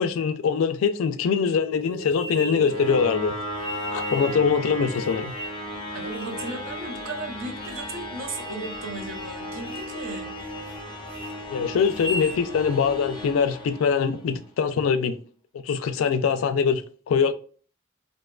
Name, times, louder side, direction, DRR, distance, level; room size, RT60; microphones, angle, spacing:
voice 1, 0.0-3.3 3.9-5.3 11.5-15.2 15.6-17.3, left 6 dB, 75° left, 0.3 m, -23 dB
sound 1, 1.3-14.4, equal, 25° left, 0.5 m, -35 dB
sound 2, 2.1-2.9 3.6-4.4 4.9-5.7 6.1-6.6 7.1-7.2 7.6-8.1 8.4-8.9 9.1-9.4 9.7-10.0 10.4-10.8 11.1-11.3 11.8-12.4, right 1 dB, 90° right, 1.2 m, -37 dB
voice 2, 5.9-10.6, right 2 dB, 65° right, 0.6 m, -36 dB
2.6 x 2.2 x 2.2 m
head